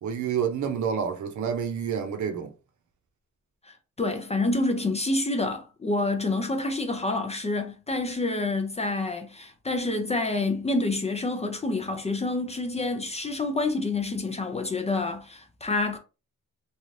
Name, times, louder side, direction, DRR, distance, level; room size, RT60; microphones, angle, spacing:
voice 1, 0.0-2.5, right 7 dB, 65° right, 0.7 m, -28 dB
voice 2, 4.0-16.0, left 2 dB, 20° left, 0.4 m, -28 dB
3.2 x 2.3 x 2.6 m
wide cardioid pair, 160°, 31 cm